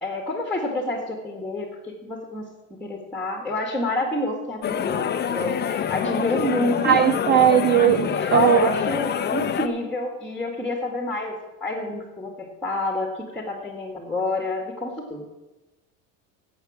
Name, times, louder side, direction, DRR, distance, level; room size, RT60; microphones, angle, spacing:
voice 1, 0.0-7.0 8.1-11.3 11.6-15.2, left 1 dB, 5° left, 2.0 m, -28 dB
sound 1, 4.6-9.7, left 8 dB, 25° left, 0.8 m, -26 dB
voice 2, 6.8-8.7, right 10 dB, 30° right, 0.4 m, -18 dB
11.5 x 7.8 x 7.3 m
supercardioid pair, 125°, 38 cm